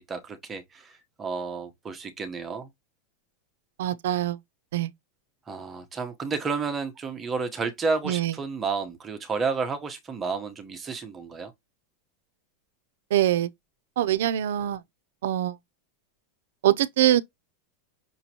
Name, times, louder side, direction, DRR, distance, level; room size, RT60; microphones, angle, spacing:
voice 1, 0.0-2.7 5.5-11.5, right 4 dB, 10° right, 0.8 m, -31 dB
voice 2, 3.8-4.4 4.7-4.9 8.1-8.3 13.1-13.5 14.0-14.8 15.2-15.6 16.6-17.2, right 12 dB, 75° right, 0.5 m, -23 dB
5.9 x 2.9 x 2.8 m
supercardioid pair, 180°, 0 cm